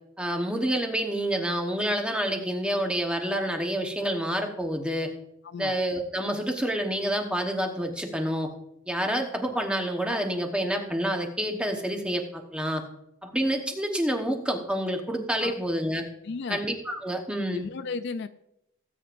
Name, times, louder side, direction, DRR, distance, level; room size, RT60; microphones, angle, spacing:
voice 1, 0.2-5.1 5.6-8.5 8.9-12.8 13.2-16.1 16.5-17.7, equal, 5° right, 3 dB, 1.0 m, -28 dB
voice 2, 5.4-5.7 15.4-15.5 16.2-16.6 17.5-18.3, left 4 dB, 55° left, 11 dB, 0.4 m, -34 dB
18.0 x 8.7 x 2.5 m, 0.82 s
head